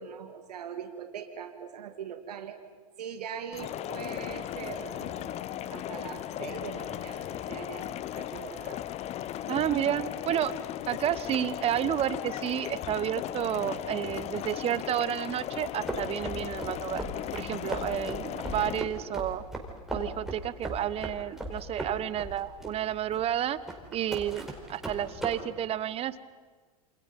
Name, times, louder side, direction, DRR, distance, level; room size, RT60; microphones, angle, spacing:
voice 1, 0.0-2.6 3.0-5.4 5.7-7.9 8.2-8.8 10.0-10.1, right 7 dB, 85° right, 6 dB, 2.3 m, -41 dB
sound 1, 3.5-18.8, left 12 dB, 35° left, 0.9 m, -37 dB
voice 2, 9.5-10.5 10.9-17.0 17.3-19.4 19.9-23.6 23.9-26.2, right 11 dB, 30° right, 16 dB, 1.1 m, -31 dB
sound 2, 15.9-25.3, right 1 dB, ahead, 4.7 m, -38 dB
28.5 x 27.0 x 5.4 m, 1.5 s
hypercardioid pair, 120°, 20 cm